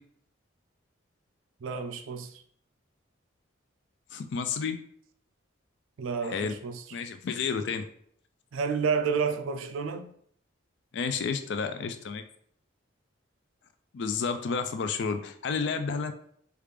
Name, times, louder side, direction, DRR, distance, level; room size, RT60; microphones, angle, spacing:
voice 1, 1.6-2.4 6.0-6.8 8.5-10.1, right 5 dB, 85° right, 0.4 m, -30 dB
voice 2, 4.1-4.8 6.2-6.5 6.9-7.9 10.9-12.2 13.9-16.1, left 5 dB, 60° left, 0.3 m, -31 dB
3.3 x 2.4 x 3.2 m
head